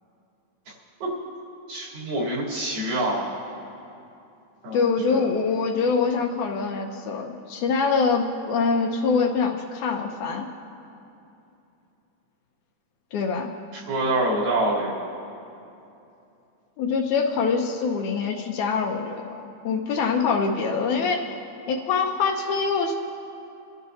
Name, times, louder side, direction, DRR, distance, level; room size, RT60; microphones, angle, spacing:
voice 1, 1.7-3.2 4.6-5.2 13.9-14.9, right 1 dB, 75° right, -7 dB, 5.2 m, -26 dB
voice 2, 4.7-10.5 13.1-13.5 16.8-19.4 19.6-21.3 21.7-22.9, left 5 dB, 80° left, 1 dB, 1.7 m, -24 dB
27.0 x 12.5 x 2.8 m, 2.8 s
omnidirectional pair, 4.4 m